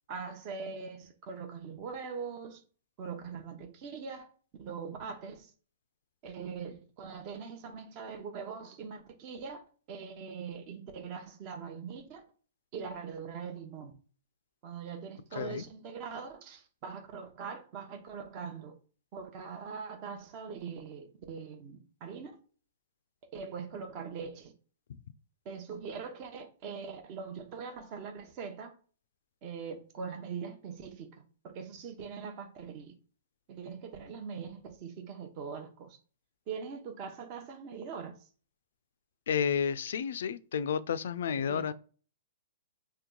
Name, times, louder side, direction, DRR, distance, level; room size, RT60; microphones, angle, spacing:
voice 1, 0.1-2.6 3.0-4.3 4.6-5.5 6.2-12.2 12.7-13.9 14.6-18.7 19.1-22.3 23.3-24.5 25.4-28.7 29.4-31.1 31.4-32.9 33.5-36.0 36.5-38.2 41.4-41.7, right 6 dB, 40° right, 0.8 m, -42 dB
voice 2, 15.3-15.7 39.3-41.7, left 7 dB, 70° left, 0.3 m, -31 dB
2.9 x 2.2 x 3.7 m
hypercardioid pair, 130°, 0 cm